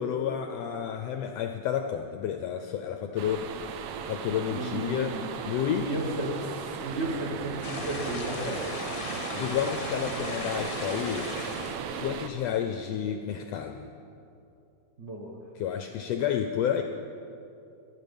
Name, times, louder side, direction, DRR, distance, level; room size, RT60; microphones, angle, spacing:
voice 1, 0.0-3.8 4.1-5.2 5.4-5.9 9.3-11.3 11.9-13.9 15.5-16.8, left 9 dB, 80° left, 6 dB, 1.4 m, -30 dB
sound 1, 3.2-12.3, right 6 dB, 80° right, 1.3 m, -36 dB
voice 2, 4.5-5.3 5.7-8.7 15.0-15.3, right 1 dB, 65° right, -1 dB, 0.6 m, -34 dB
sound 2, 7.6-11.8, left 4 dB, 60° left, 0.9 m, -38 dB
22.5 x 8.7 x 5.3 m, 2.7 s
omnidirectional pair, 3.5 m